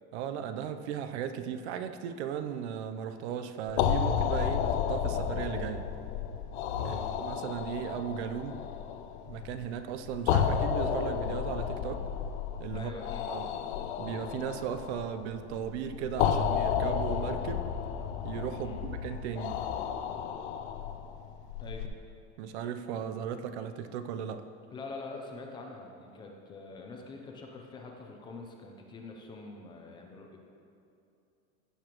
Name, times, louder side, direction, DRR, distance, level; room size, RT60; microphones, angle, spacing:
voice 1, 0.1-5.9 6.8-8.6 9.3-12.1 12.6-13.0 13.3-13.5 14.0-17.6 18.2-19.6 22.4-24.4, right 8 dB, 80° right, 10 dB, 0.7 m, -36 dB
sound 1, 3.7-21.9, left 8 dB, 80° left, 0.7 m, -32 dB
voice 2, 6.8-7.1 12.7-13.3 18.6-18.8 21.6-21.9 24.7-30.4, left 3 dB, 15° left, 1 dB, 0.5 m, -44 dB
16.0 x 6.8 x 3.0 m, 2.7 s
supercardioid pair, 180°, 33 cm